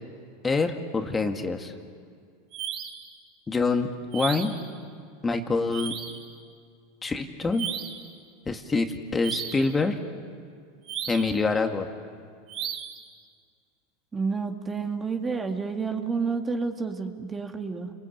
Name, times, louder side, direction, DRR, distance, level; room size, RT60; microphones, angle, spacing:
voice 1, 0.4-1.7 3.5-3.9 4.1-4.5 5.2-6.0 7.0-7.7 8.5-10.0 11.1-11.9, left 3 dB, 20° left, 5 dB, 2.1 m, -26 dB
sound 1, 2.5-3.1 4.1-4.7 5.7-6.3 7.5-8.1 9.2-9.7 10.8-11.4 12.5-13.0, right 9 dB, 50° right, 2.9 m, -35 dB
voice 2, 14.1-17.9, right 4 dB, 20° right, 4 dB, 2.2 m, -30 dB
30.0 x 22.5 x 8.7 m, 2.1 s
hypercardioid pair, 105°, 0 cm